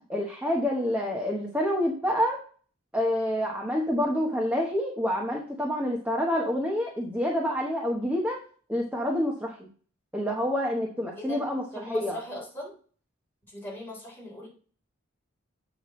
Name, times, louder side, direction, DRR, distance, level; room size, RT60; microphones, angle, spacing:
voice 1, 0.1-2.4 2.9-8.4 8.7-9.5 10.1-11.6 11.9-12.2, equal, 10° right, -1 dB, 0.9 m, -27 dB
voice 2, 11.2-12.7 13.5-14.5, equal, 10° left, -4 dB, 3.7 m, -39 dB
8.0 x 5.8 x 3.1 m, 0.43 s
head